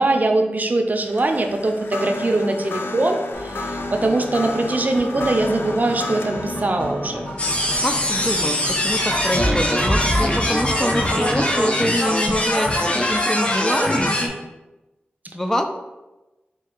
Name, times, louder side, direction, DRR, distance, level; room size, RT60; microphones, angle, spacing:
voice 1, 0.0-7.2, right 2 dB, 45° right, 5 dB, 0.6 m, -22 dB
sound 1, 1.0-10.3, left 2 dB, 75° left, 0.4 m, -33 dB
sound 2, 3.3-12.6, equal, 45° left, 1.4 m, -31 dB
sound 3, 7.4-14.3, left 1 dB, 30° left, 0.8 m, -22 dB
voice 2, 7.7-14.2 15.3-15.6, equal, 15° left, 5 dB, 0.4 m, -25 dB
4.4 x 2.7 x 3.8 m, 1.0 s
cardioid pair, 40°, 4 cm